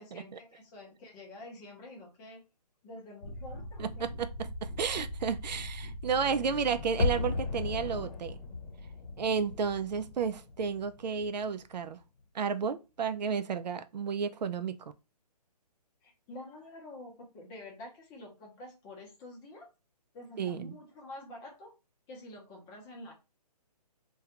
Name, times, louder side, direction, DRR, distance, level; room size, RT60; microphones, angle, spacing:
voice 1, 0.0-2.4 2.8-4.1 16.0-19.7 20.1-21.7 22.1-23.1, left 1 dB, 15° left, 0.7 m, -48 dB
sound 1, 3.2-8.5, left 2 dB, 90° left, 0.6 m, -41 dB
voice 2, 3.8-8.4 9.2-12.0 12.3-14.8 20.4-20.7, right 6 dB, 85° right, 0.4 m, -32 dB
sound 2, 7.0-11.9 12.2-12.3, left 3 dB, 55° left, 0.8 m, -36 dB
2.3 x 2.3 x 2.8 m
hypercardioid pair, 150°, 21 cm